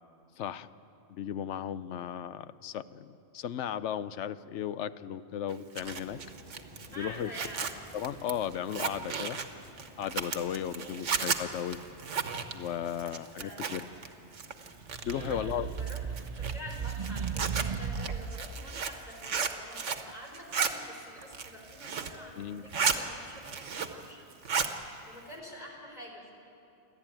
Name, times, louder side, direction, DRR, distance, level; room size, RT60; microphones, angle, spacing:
voice 1, 0.4-0.7 1.1-6.2 7.0-7.3 7.9-9.4 10.0-11.8 12.5-13.9 15.0-15.7 22.4-22.6, left 9 dB, 75° left, 15 dB, 0.9 m, -35 dB
Zipper (clothing), 5.5-14.1 14.3-15.3 15.8-20.1 20.3-20.7 21.2-22.2 22.5-23.0 23.3-24.1 24.3-24.7, right 6 dB, 75° right, 1.4 m, -34 dB
sound 1, 5.8-20.7, equal, 5° right, 4.9 m, -56 dB
voice 2, 6.9-7.8 10.7-11.1 13.0-13.7 15.1-16.0 16.3-24.3 25.1-26.3, equal, 35° left, -1 dB, 4.2 m, -47 dB
sound 2, 14.8-18.5, right 6 dB, 40° right, 0.6 m, -35 dB
28.5 x 12.0 x 9.0 m, 2.7 s
omnidirectional pair, 1.2 m